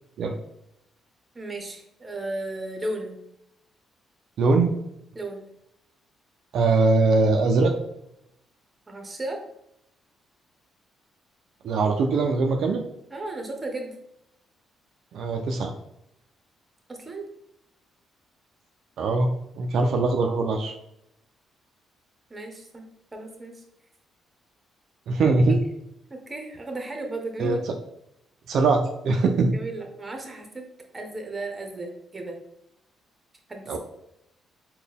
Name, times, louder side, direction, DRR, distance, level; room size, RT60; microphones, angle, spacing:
voice 1, 1.3-3.2 5.1-5.4 8.9-9.4 13.1-13.9 16.9-17.3 22.3-22.8 23.1-23.6 25.3-25.6 26.1-27.6 29.5-30.7 30.9-32.4 33.5-33.8, right 2 dB, 25° right, 3 dB, 0.8 m, -34 dB
voice 2, 4.4-4.7 6.5-7.7 11.6-12.8 15.1-15.7 19.0-19.3 19.5-20.7 25.1-25.5 27.4-27.6 28.5-29.5 33.7-33.8, right 3 dB, 70° right, 3 dB, 0.3 m, -21 dB
4.0 x 2.2 x 3.5 m, 0.79 s
cardioid pair, 90°, 0 cm